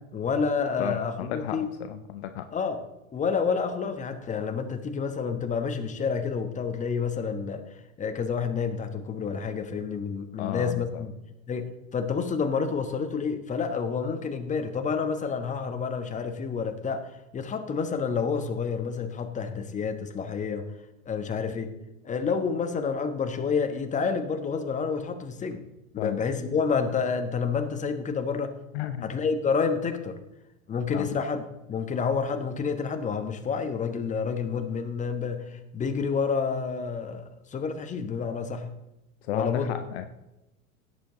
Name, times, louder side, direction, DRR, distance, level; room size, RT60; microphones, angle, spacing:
voice 1, 0.0-1.7 2.5-2.8 3.1-7.6 8.0-11.1 11.5-20.7 21.0-21.7 22.0-25.6 25.9-28.6 29.0-30.2 30.7-38.7 39.3-39.7, left 5 dB, 20° left, 7 dB, 1.3 m, -29 dB
voice 2, 0.8-2.5 10.4-11.0 26.0-26.2 28.7-29.1 30.9-31.1 39.2-40.1, left 11 dB, 50° left, 9 dB, 0.9 m, -33 dB
17.0 x 7.3 x 3.9 m, 0.95 s
figure-of-eight pair, 85°, 41 cm